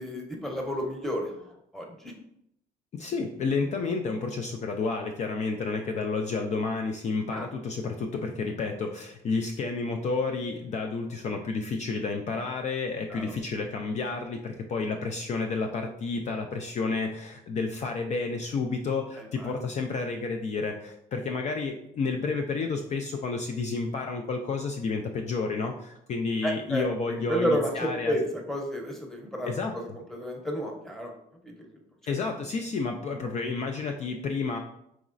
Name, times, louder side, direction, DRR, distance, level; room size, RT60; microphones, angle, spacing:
voice 1, 0.0-1.3 1.7-2.1 7.3-7.5 13.1-13.2 19.4-19.5 26.4-26.8 27.1-29.8 30.1-31.1 31.4-31.7 32.1-32.2, equal, ahead, 1 dB, 0.8 m, -31 dB
voice 2, 2.9-28.1 29.5-30.0 32.1-34.6, left 4 dB, 45° left, 3 dB, 0.4 m, -30 dB
4.8 x 3.0 x 2.5 m, 0.76 s
cardioid pair, 110°, 17 cm